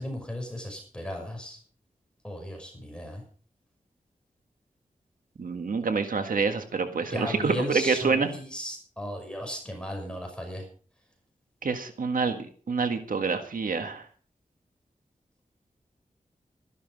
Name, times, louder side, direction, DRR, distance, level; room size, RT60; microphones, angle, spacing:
voice 1, 0.0-1.6 2.2-3.2 7.1-10.7, left 1 dB, 5° left, 2 dB, 5.8 m, -36 dB
voice 2, 5.4-8.3 11.6-14.0, right 4 dB, 80° right, 7 dB, 1.7 m, -27 dB
14.0 x 12.0 x 5.3 m, 0.43 s
wide cardioid pair, 90°, 14 cm